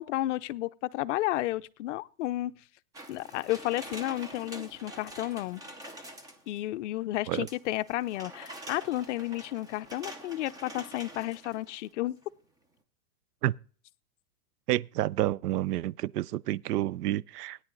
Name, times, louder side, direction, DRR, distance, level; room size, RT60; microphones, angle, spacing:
voice 1, 0.0-2.5 3.1-5.6 6.5-12.2, left 16 dB, 50° left, 0.5 m, -32 dB
sound 1, 2.9-6.6 7.5-11.9 12.2-12.3, right 1 dB, 10° right, 0.7 m, -46 dB
voice 2, 14.7-17.6, right 15 dB, 85° right, 0.6 m, -29 dB
17.0 x 9.8 x 3.8 m
supercardioid pair, 155°, 46 cm